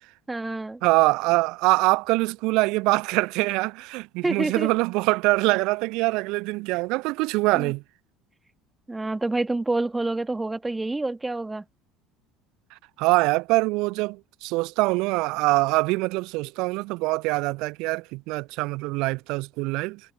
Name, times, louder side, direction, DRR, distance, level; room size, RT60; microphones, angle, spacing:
voice 1, 0.3-0.8 4.2-4.7 7.5-7.7 8.9-11.6, right 2 dB, 15° right, 2.3 m, -27 dB
voice 2, 0.8-7.8 13.0-20.0, right 23 dB, 55° right, 0.3 m, -24 dB
figure-of-eight pair, 60°, 0 cm